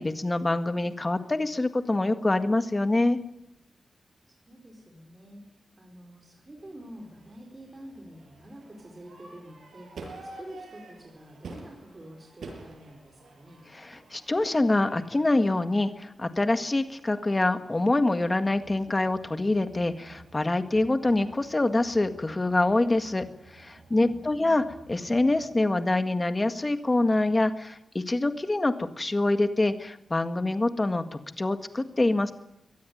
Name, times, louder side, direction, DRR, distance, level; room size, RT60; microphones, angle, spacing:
voice 1, 0.0-3.2 13.7-24.6 24.9-32.3, left 2 dB, 20° left, 9 dB, 1.8 m, -25 dB
voice 2, 4.3-13.6 24.0-24.5, equal, 25° right, 2 dB, 4.4 m, -47 dB
Crowd / Fireworks, 6.6-25.6, right 3 dB, 80° right, 7.0 m, -50 dB
23.0 x 19.0 x 9.4 m, 0.84 s
wide cardioid pair, 170°, 0 cm